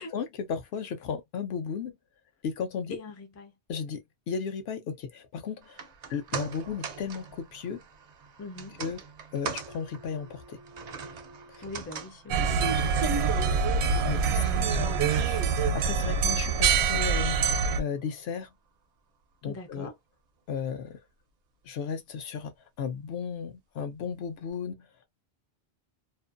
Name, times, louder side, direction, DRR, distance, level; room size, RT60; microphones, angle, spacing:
voice 1, 0.0-2.0 2.4-3.0 3.7-7.8 8.8-9.0 9.3-10.6 11.5-11.6 13.7-14.4 14.7-18.5 19.4-19.9 20.5-21.0 21.6-24.9, left 6 dB, 70° left, 0.8 m, -35 dB
voice 2, 2.9-3.5 8.4-8.8 11.6-13.2 14.4-15.0 19.4-19.9, left 2 dB, 25° left, 0.3 m, -42 dB
sound 1, 5.6-18.0 18.3-18.4, right 6 dB, 55° right, 0.5 m, -43 dB
sound 2, 12.3-17.8, right 5 dB, 75° right, 0.8 m, -25 dB
2.5 x 2.2 x 2.4 m
omnidirectional pair, 1.1 m